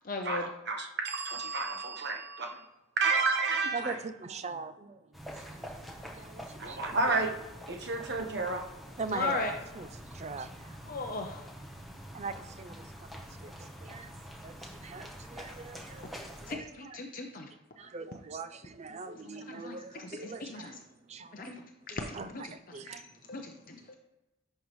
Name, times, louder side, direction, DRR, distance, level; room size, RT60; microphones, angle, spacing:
voice 1, 0.1-0.5 9.1-9.5 10.9-11.5 16.5-17.5 19.2-20.8 21.3-22.5 23.3-23.9, left 3 dB, 40° left, 3 dB, 0.7 m, -37 dB
voice 2, 0.7-2.7 3.0-4.0 6.6-7.3 7.7-8.6, right 3 dB, 50° right, 3 dB, 1.2 m, -30 dB
voice 3, 3.7-7.0 9.0-10.8 11.9-12.9 13.4-14.1 14.4-17.0 17.8-21.5 21.9-23.3, right 4 dB, 30° right, 11 dB, 0.5 m, -42 dB
sound 1, 5.1-16.5, equal, ahead, 1.0 m, -46 dB
11.0 x 5.5 x 3.1 m, 0.99 s
head